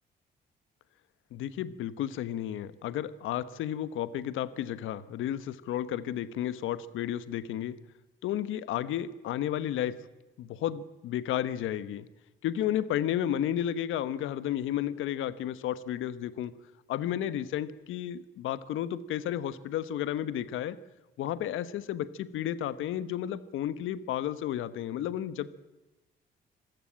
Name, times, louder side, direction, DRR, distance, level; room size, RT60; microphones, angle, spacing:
voice 1, 1.3-7.8 8.2-10.0 10.4-12.1 12.4-16.5 16.9-20.8 21.2-25.5, left 11 dB, 85° left, 15 dB, 1.2 m, -32 dB
26.0 x 15.0 x 8.9 m, 1.0 s
cardioid pair, 90°, 20 cm